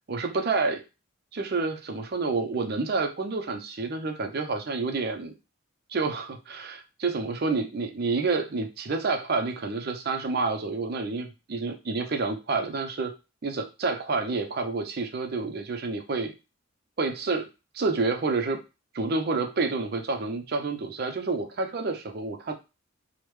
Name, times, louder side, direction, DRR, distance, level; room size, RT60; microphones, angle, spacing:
voice 1, 0.1-0.8 1.3-5.3 5.9-13.1 13.4-16.3 17.0-17.5 17.7-18.6 18.9-22.5, right 3 dB, 45° right, 5 dB, 0.5 m, -29 dB
3.3 x 2.1 x 3.0 m, 0.28 s
head